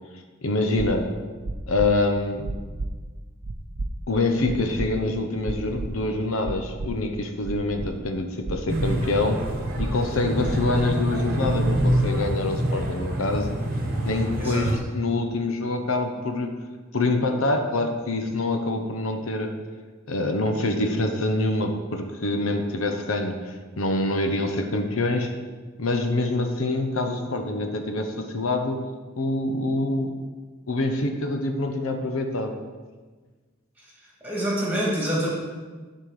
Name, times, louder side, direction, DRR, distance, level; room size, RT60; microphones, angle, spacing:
voice 1, 0.4-1.1 1.7-2.5 4.1-9.4 9.8-13.6 14.0-16.6 16.9-19.5 20.1-25.3 25.8-28.8 29.2-30.2 30.7-32.5, left 2 dB, 75° left, 5 dB, 0.9 m, -25 dB
sound 1, 0.8-0.9 1.4-1.9 2.4-2.9 3.4-3.9 4.4-4.9 5.4-5.9 6.4-6.9 7.4-7.9 8.4-8.9 9.4-9.9 10.4-10.9 11.4-11.9, right 2 dB, 60° right, 0.7 m, -31 dB
sound 2, 8.7-14.8, right 1 dB, 40° right, 1.2 m, -26 dB
voice 2, 14.3-14.7 34.2-35.3, equal, 10° right, -4 dB, 2.4 m, -26 dB
11.0 x 4.4 x 6.5 m, 1.4 s
head